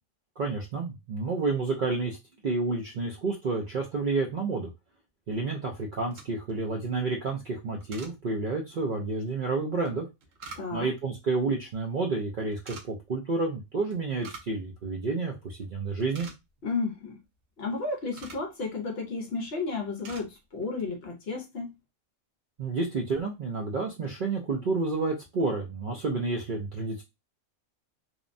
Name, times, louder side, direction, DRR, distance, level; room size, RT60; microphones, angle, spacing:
voice 1, 0.4-2.2 2.4-4.7 5.3-10.1 10.7-16.3 22.6-27.0, right 3 dB, 60° right, 0.5 m, -30 dB
sound 1, 6.0-6.6 7.8-8.2 9.9-11.0 12.5-12.9 13.9-14.6 14.9-15.0 15.5-15.6 15.9-16.7 17.6-18.5 19.2-19.5 19.7-20.3 20.6-20.9, right 4 dB, 75° right, 1.0 m, -46 dB
voice 2, 10.5-10.9 16.6-17.2 17.6-21.8, left 4 dB, 60° left, 0.8 m, -33 dB
2.9 x 2.1 x 2.5 m
omnidirectional pair, 1.4 m